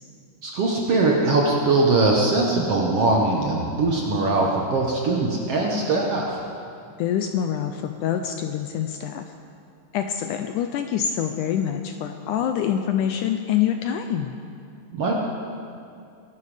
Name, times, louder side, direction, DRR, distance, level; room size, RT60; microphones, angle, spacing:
voice 1, 0.4-6.4 14.9-15.2, right 2 dB, 60° right, -1 dB, 1.7 m, -21 dB
voice 2, 7.0-9.2 9.9-14.3, left 9 dB, 80° left, 6 dB, 1.9 m, -25 dB
21.5 x 11.5 x 5.0 m, 2.5 s
omnidirectional pair, 4.1 m